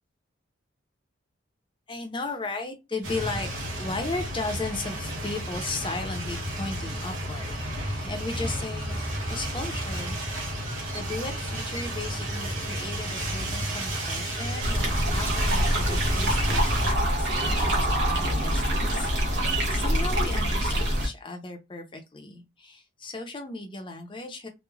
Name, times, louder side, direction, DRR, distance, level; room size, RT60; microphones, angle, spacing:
voice 1, 1.9-3.5 3.8-9.0 9.3-10.2 10.5-24.5, left 3 dB, 25° left, 0.6 m, -36 dB
sound 1, 3.0-16.9, right 1 dB, 85° right, 1.0 m, -32 dB
sound 2, 14.6-21.1, equal, 60° right, 0.9 m, -25 dB
3.1 x 2.2 x 2.3 m
head